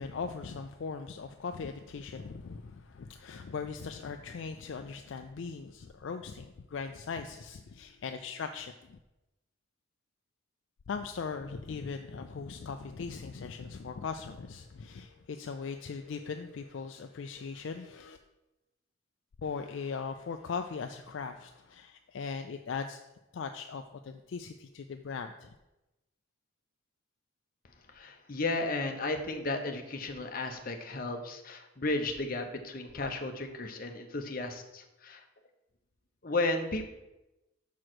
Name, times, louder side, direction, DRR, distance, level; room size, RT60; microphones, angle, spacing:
voice 1, 0.0-9.0 10.9-18.2 19.4-23.0 23.3-25.5, left 5 dB, 65° left, 6 dB, 0.4 m, -39 dB
voice 2, 27.9-35.2 36.2-36.9, left 2 dB, 45° left, 5 dB, 0.8 m, -34 dB
6.2 x 4.7 x 6.0 m, 0.98 s
head